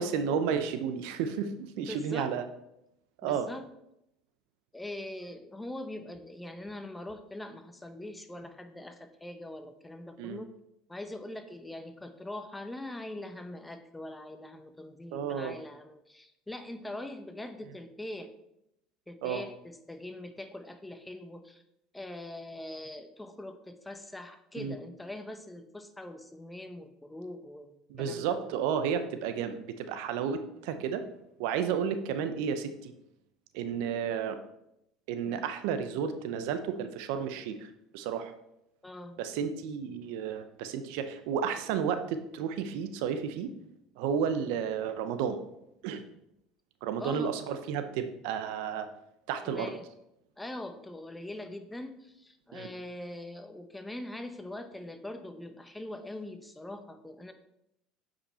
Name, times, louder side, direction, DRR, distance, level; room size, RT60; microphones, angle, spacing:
voice 1, 0.0-1.5 1.8-2.4 3.2-3.5 10.2-10.4 15.1-15.6 19.2-19.4 24.6-24.7 27.9-31.0 31.4-32.9 33.5-34.4 35.1-38.3 39.2-43.5 44.0-45.4 45.8-46.0 46.8-48.9 49.3-49.7 52.5-52.7, right 7 dB, 75° right, 9 dB, 0.7 m, -32 dB
voice 2, 1.8-2.3 3.2-3.6 4.7-10.6 10.9-18.3 19.1-21.6 21.9-28.4 35.3-35.4 38.8-39.2 47.0-47.4 49.5-49.9 50.4-57.3, left 1 dB, 10° left, 8 dB, 0.9 m, -42 dB
8.5 x 5.3 x 4.3 m, 0.81 s
hypercardioid pair, 80°, 0 cm